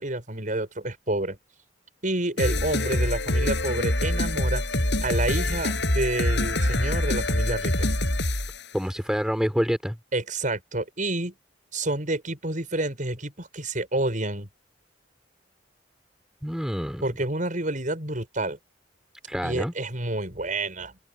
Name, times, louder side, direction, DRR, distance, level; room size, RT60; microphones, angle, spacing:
voice 1, 0.0-1.4 2.0-4.6 5.0-7.9 10.1-11.3 11.7-14.5 17.0-18.6 19.4-21.0, right 2 dB, 45° right, 7.9 m, -29 dB
sound 1, 2.4-8.7, left 1 dB, 70° left, 7.8 m, -25 dB
voice 2, 8.7-10.0 16.4-17.0 19.3-19.7, equal, 5° right, 4.0 m, -27 dB
open air
head